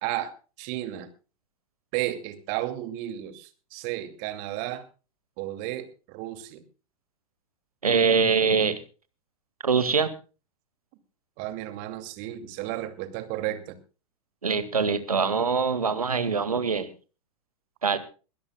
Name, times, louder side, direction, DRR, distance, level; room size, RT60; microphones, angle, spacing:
voice 1, 0.0-0.3 0.6-1.1 1.9-4.8 5.4-6.6 11.4-13.8, right 14 dB, 40° right, 10 dB, 2.4 m, -33 dB
voice 2, 7.8-8.8 9.6-10.1 14.4-16.9 17.8-18.0, right 5 dB, 80° right, 13 dB, 1.9 m, -23 dB
23.0 x 17.0 x 2.3 m, 0.34 s
figure-of-eight pair, 95°, 19 cm